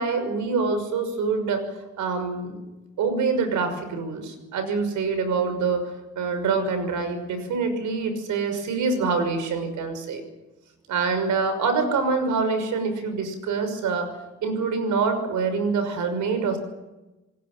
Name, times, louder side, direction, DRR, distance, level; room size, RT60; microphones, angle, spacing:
voice 1, 0.0-1.6 2.0-2.6 3.0-5.8 6.2-10.2 10.9-14.1 14.4-16.6, right 4 dB, 80° right, 9 dB, 6.1 m, -25 dB
28.0 x 18.5 x 7.7 m, 1.1 s
cardioid pair, 90°, 30 cm